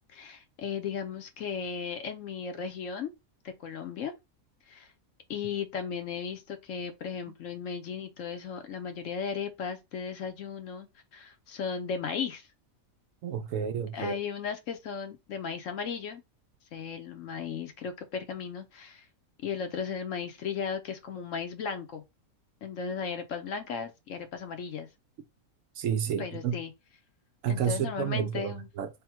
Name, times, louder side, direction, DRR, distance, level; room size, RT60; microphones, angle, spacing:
voice 1, 0.1-3.1 3.4-4.1 4.7-4.9 5.3-10.9 11.1-12.5 13.9-16.2 16.7-19.1 19.4-22.0 22.6-24.9 26.2-26.7 27.5-28.7, left 6 dB, 65° left, 1.0 m, -36 dB
voice 2, 13.2-14.2 25.8-26.6 27.4-28.9, right 8 dB, 70° right, 0.9 m, -30 dB
3.5 x 2.2 x 4.4 m
omnidirectional pair, 1.5 m